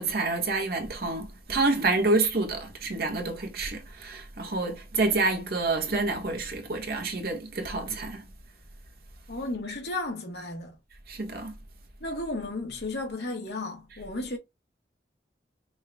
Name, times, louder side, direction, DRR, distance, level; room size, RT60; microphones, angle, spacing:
voice 1, 0.0-8.3 11.1-11.5, right 3 dB, 60° right, 1.3 m, -28 dB
voice 2, 9.3-10.7 12.0-14.4, left 2 dB, 65° left, 1.5 m, -33 dB
5.5 x 2.4 x 3.3 m
head